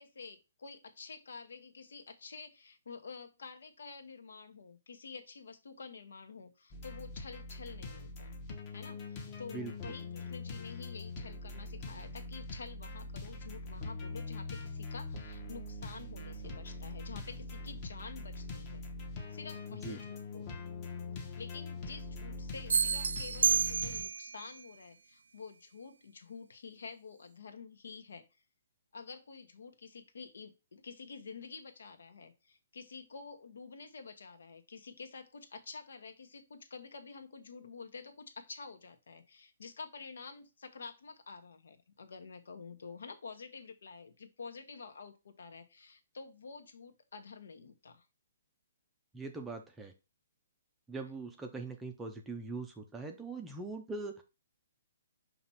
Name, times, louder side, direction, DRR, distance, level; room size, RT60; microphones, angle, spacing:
voice 1, 0.0-8.4 8.7-18.9 19.3-20.6 21.4-28.3 28.9-48.1, left 5 dB, 75° left, 8 dB, 1.1 m, -49 dB
sound 1, 6.7-24.0, left 3 dB, 20° left, 0.8 m, -43 dB
sound 2, 22.7-24.3, right 6 dB, 75° right, 0.3 m, -29 dB
voice 2, 49.1-49.9 50.9-54.2, right 3 dB, 5° right, 3 dB, 0.5 m, -41 dB
5.9 x 2.9 x 5.5 m, 0.28 s
hypercardioid pair, 175°, 0 cm